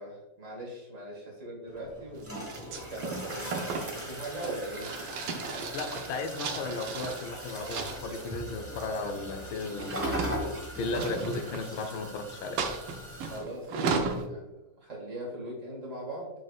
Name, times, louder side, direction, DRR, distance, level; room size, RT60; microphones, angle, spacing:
voice 1, 0.0-4.9 13.2-16.3, right 1 dB, 40° right, -2 dB, 2.0 m, -40 dB
sound 1, 1.7-13.4, right 1 dB, 10° right, 1.0 m, -39 dB
sound 2, 2.5-7.3 7.7-8.3 9.3-12.1 12.6-14.3, right 4 dB, 90° right, 1.6 m, -35 dB
voice 2, 5.7-12.6, left 3 dB, 85° left, 7 dB, 1.5 m, -35 dB
7.7 x 6.4 x 2.3 m, 1.0 s
omnidirectional pair, 2.1 m